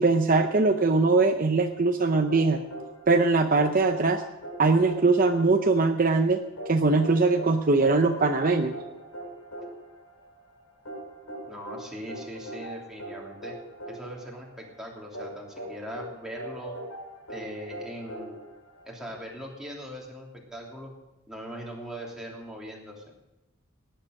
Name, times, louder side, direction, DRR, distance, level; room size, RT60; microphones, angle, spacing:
voice 1, 0.0-2.6 3.1-4.2 4.6-6.4 6.7-8.7, right 3 dB, 40° right, 5 dB, 0.7 m, -21 dB
sound 1, 2.3-19.2, right 1 dB, 80° left, 6.0 m, -41 dB
voice 2, 11.4-13.5 13.9-16.8 17.3-18.6 18.9-20.9 21.3-23.1, equal, ahead, -3 dB, 3.0 m, -40 dB
18.5 x 10.5 x 6.4 m, 0.98 s
head